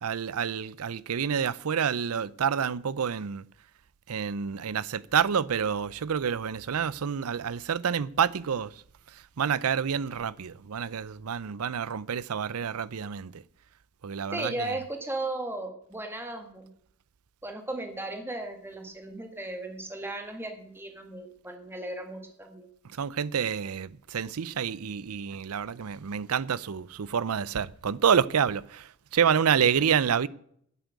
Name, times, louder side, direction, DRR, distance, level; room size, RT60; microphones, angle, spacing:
voice 1, 0.0-3.5 4.1-8.7 9.1-13.4 14.0-14.7 22.9-30.3, right 7 dB, 85° right, 0.5 m, -28 dB
voice 2, 14.3-16.7 17.4-22.7, right 2 dB, 10° right, 1.7 m, -36 dB
10.0 x 8.1 x 8.1 m
head